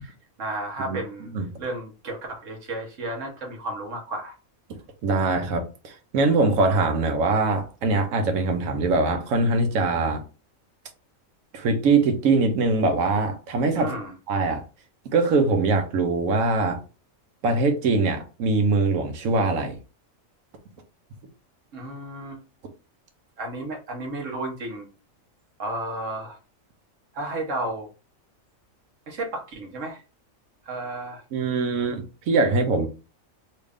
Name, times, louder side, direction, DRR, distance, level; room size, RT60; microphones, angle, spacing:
voice 1, 0.0-1.3 1.6-4.4 13.7-14.1 21.7-22.4 23.4-24.9 25.6-26.4 27.1-27.9 29.1-30.0 30.6-31.2, right 2 dB, 70° right, 1.3 m, -33 dB
voice 2, 5.0-10.2 11.5-13.9 14.3-14.6 15.1-16.8 17.4-19.8 31.3-32.9, right 3 dB, 90° right, 1.2 m, -22 dB
3.2 x 2.4 x 3.4 m
omnidirectional pair, 1.4 m